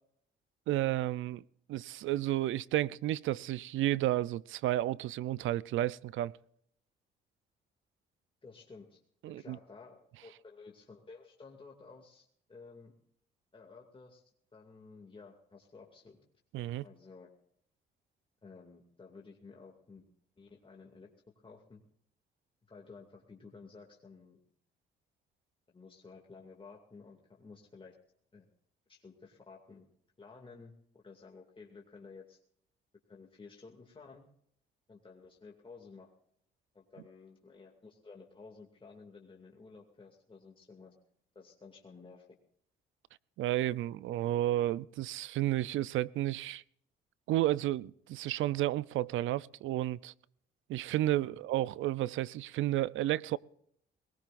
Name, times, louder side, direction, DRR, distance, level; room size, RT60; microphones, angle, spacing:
voice 1, 0.7-1.4 1.7-6.3 9.2-9.6 16.5-16.8 43.4-46.6 47.3-50.1 50.7-53.4, right 14 dB, 80° right, 0.5 m, -32 dB
voice 2, 8.4-9.0 9.3-12.9 13.5-16.2 16.8-17.3 18.4-20.1 20.4-21.1 21.4-21.8 22.7-24.4 25.7-28.0 28.3-28.5 28.9-29.9 30.2-32.4 33.1-34.2 34.9-36.1 36.7-40.9 41.3-42.3 51.3-51.4, left 4 dB, 25° left, 2.4 m, -53 dB
21.5 x 19.5 x 2.6 m
cardioid pair, 90°, 20 cm